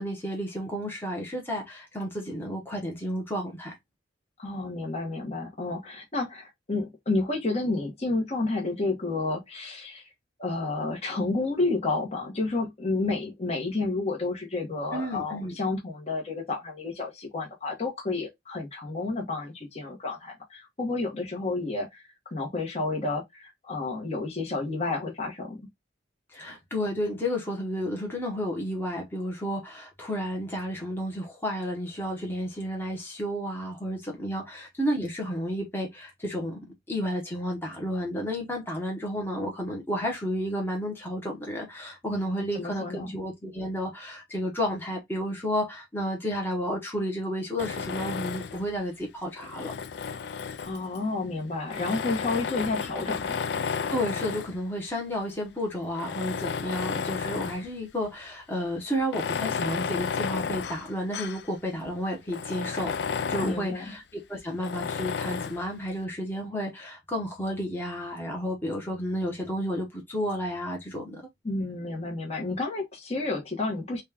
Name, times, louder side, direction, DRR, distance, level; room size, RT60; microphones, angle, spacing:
voice 1, 0.0-3.7 14.9-15.5 26.3-36.6 36.9-49.7 53.9-62.9 63.3-71.2, equal, 10° left, 1.0 m, -32 dB
voice 2, 4.4-10.0 10.4-25.7 42.4-43.1 50.6-53.4 63.4-63.9 71.4-74.0, left 3 dB, 35° left, 1.1 m, -30 dB
Tools, 47.6-48.7 49.4-51.0 51.7-54.6 55.3-55.4 55.9-57.7 58.0-58.1 59.0-61.5 61.9-62.0 62.3-63.7 64.6-65.6, left 6 dB, 65° left, 0.4 m, -32 dB
4.1 x 2.3 x 3.4 m
head